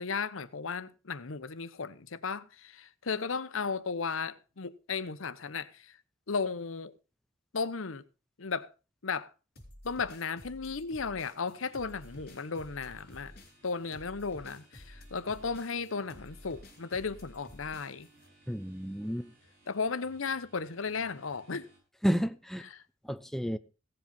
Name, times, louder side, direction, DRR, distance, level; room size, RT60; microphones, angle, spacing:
voice 1, 0.0-6.0 6.3-6.9 7.5-8.0 8.4-8.7 9.0-9.3 9.8-13.3 13.6-18.1 19.7-21.7 22.7-22.8, left 5 dB, 90° left, 0.9 m, -35 dB
sound 1, 9.6-18.3, left 1 dB, 50° left, 4.7 m, -52 dB
sound 2, 11.5-21.8, right 2 dB, 50° right, 7.5 m, -62 dB
voice 2, 18.5-19.3 22.0-22.7 23.0-23.6, equal, ahead, 0.6 m, -31 dB
16.5 x 7.9 x 5.3 m
head